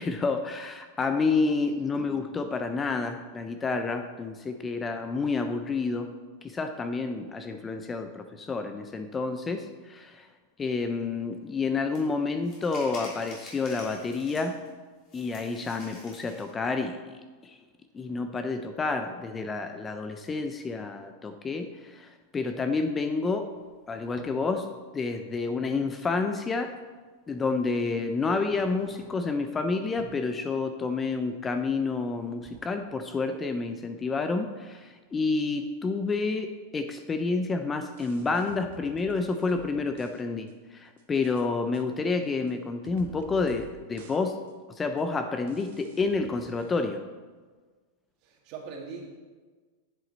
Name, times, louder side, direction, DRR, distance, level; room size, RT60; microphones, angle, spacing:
voice 1, 0.0-6.1 6.4-10.3 10.6-14.6 15.1-17.6 17.9-23.5 23.9-26.8 27.3-44.4 44.7-47.0, left 4 dB, 15° left, 7 dB, 0.4 m, -29 dB
voice 2, 1.7-2.2 48.2-49.1, right 5 dB, 45° right, 0 dB, 2.0 m, -42 dB
sound 1, 11.9-12.0 12.4-14.7 15.1-16.5, left 2 dB, 35° left, 3.3 m, -47 dB
sound 2, 23.5-24.6 26.2-26.3 27.5-27.7 28.2-29.5 29.8-30.3 31.7-32.0 32.3-32.6, right 3 dB, 15° right, 2.1 m, -52 dB
sound 3, 37.9-40.2 40.5-40.6 41.0-41.4 41.7-41.8 42.5-42.6 42.8-43.7 44.0-44.2 44.5-44.6 45.0-45.1 45.5-46.9, right 9 dB, 65° right, 1.0 m, -51 dB
9.9 x 7.9 x 4.0 m, 1.4 s
supercardioid pair, 145°, 0 cm